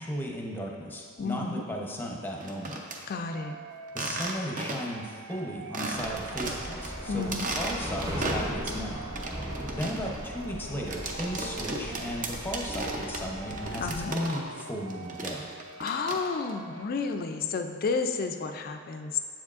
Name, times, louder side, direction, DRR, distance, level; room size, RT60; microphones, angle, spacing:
voice 1, 0.0-2.7 3.9-9.0 9.7-15.5, equal, 10° left, -1 dB, 0.7 m, -35 dB
voice 2, 1.2-1.6 3.1-3.6 7.1-7.5 13.8-14.1 15.8-19.2, left 4 dB, 45° left, 6 dB, 0.4 m, -31 dB
sound 1, 2.3-3.0 3.9-5.0 5.3-5.4 5.7-6.9 7.2-8.8 9.2-14.6 14.9-16.5, right 2 dB, 40° right, 0.6 m, -35 dB
sound 2, 3.3-16.9, right 3 dB, 90° right, 0.3 m, -46 dB
sound 3, 5.9-14.0, equal, 15° right, 0.9 m, -38 dB
7.6 x 7.1 x 2.4 m, 2.2 s
head